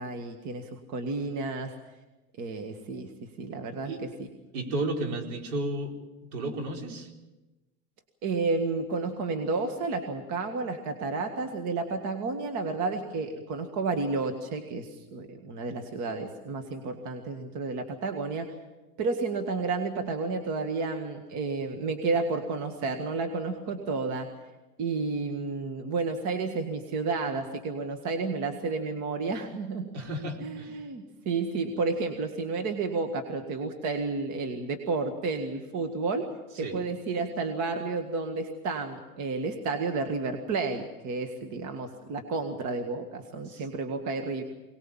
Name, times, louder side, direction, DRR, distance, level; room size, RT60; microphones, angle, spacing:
voice 1, 0.0-1.7 2.4-3.1 3.4-3.9 4.2-4.3 8.2-18.5 19.0-24.3 24.8-29.9 30.4-36.3 36.6-44.4, right 3 dB, 40° right, 5 dB, 1.9 m, -31 dB
voice 2, 4.5-5.9 6.3-7.1 29.9-30.8 36.6-36.8 43.4-43.7, right 2 dB, 70° right, 2 dB, 4.6 m, -33 dB
23.0 x 19.5 x 7.4 m, 1.1 s
supercardioid pair, 140°, 45 cm